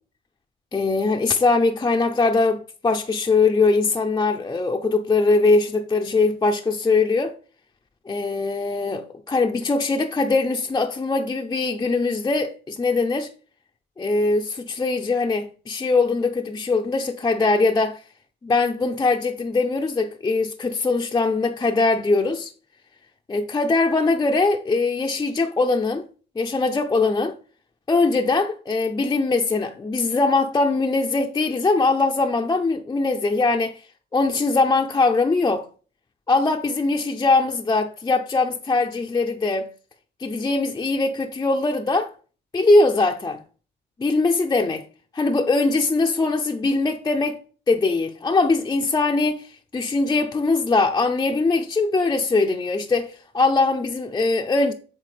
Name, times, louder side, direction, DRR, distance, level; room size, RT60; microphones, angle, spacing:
voice 1, 0.7-7.3 8.1-13.3 14.0-18.0 18.4-22.5 23.3-26.1 26.4-27.3 27.9-33.8 34.1-35.7 36.3-39.7 40.2-42.1 42.5-43.4 44.0-44.8 45.1-47.4 47.7-54.7, left 3 dB, 20° left, 0.5 m, -21 dB
7.5 x 3.8 x 3.3 m
cardioid pair, 90°, 20 cm